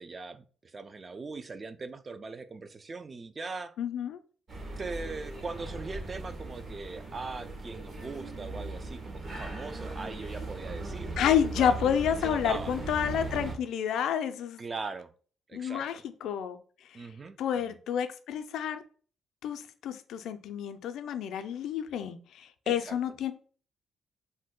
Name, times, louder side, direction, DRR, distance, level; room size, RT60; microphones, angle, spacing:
voice 1, 0.0-3.7 4.8-11.2 11.5-11.8 12.2-12.7 14.6-15.1 15.5-15.9 16.9-17.4 17.6-17.8 22.7-23.0, right 4 dB, 35° right, 0.3 m, -40 dB
voice 2, 3.8-4.2 11.2-14.6 15.5-16.6 17.4-18.8 19.4-23.3, left 9 dB, 80° left, 0.3 m, -29 dB
sound 1, 4.5-13.6, right 2 dB, 50° right, 0.9 m, -38 dB
2.6 x 2.1 x 3.6 m
cardioid pair, 90°, 0 cm